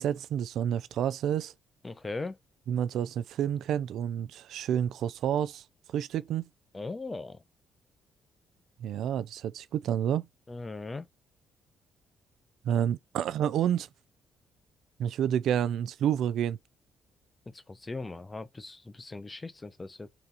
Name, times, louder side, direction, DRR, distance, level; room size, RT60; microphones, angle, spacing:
voice 1, 0.0-1.5 2.7-5.6 5.9-6.5 8.8-10.3 12.6-13.9 15.0-16.6, right 9 dB, 75° right, 0.3 m, -29 dB
voice 2, 1.8-2.4 6.7-7.4 10.5-11.1 17.5-20.1, left 3 dB, 25° left, 0.6 m, -39 dB
3.4 x 2.9 x 4.0 m
cardioid pair, 75°, 0 cm